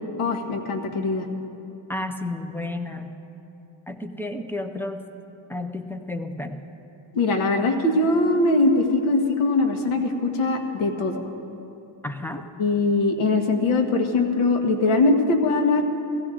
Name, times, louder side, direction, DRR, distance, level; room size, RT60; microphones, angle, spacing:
voice 1, 0.2-1.2 7.1-11.1 12.6-15.8, left 2 dB, 80° left, 4 dB, 1.6 m, -21 dB
voice 2, 1.9-3.1 3.9-5.0 5.5-6.6 12.0-12.4, left 2 dB, 5° left, 7 dB, 0.4 m, -31 dB
16.0 x 15.5 x 3.8 m, 2.8 s
cardioid pair, 150°, 49 cm